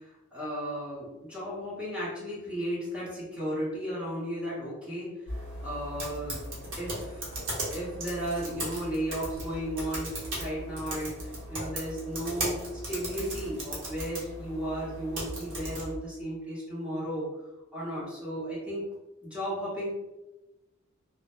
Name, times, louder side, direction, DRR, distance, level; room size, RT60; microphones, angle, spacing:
voice 1, 0.0-5.1 5.6-6.4 6.8-7.3 7.7-12.6 12.9-17.2 17.7-18.8 19.2-19.9, equal, 5° right, -9 dB, 0.9 m, -34 dB
sound 1, 5.3-15.9, right 1 dB, 65° right, 0.9 m, -37 dB
2.1 x 2.0 x 2.9 m, 1.1 s
head